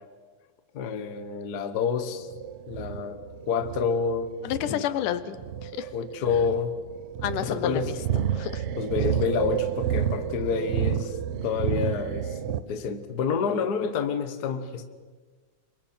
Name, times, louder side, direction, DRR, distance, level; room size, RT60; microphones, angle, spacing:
voice 1, 0.7-2.3 2.7-4.3 4.6-4.9 5.9-6.7 7.4-7.9 8.8-11.2 11.4-14.8, left 6 dB, 60° left, 8 dB, 1.0 m, -28 dB
sound 1, 2.2-12.6, right 9 dB, 90° right, 1.2 m, -30 dB
voice 2, 4.4-5.4 5.6-5.9 7.2-7.9 8.3-8.6, left 11 dB, 85° left, 13 dB, 2.4 m, -30 dB
27.5 x 24.0 x 4.4 m, 1.5 s
omnidirectional pair, 3.6 m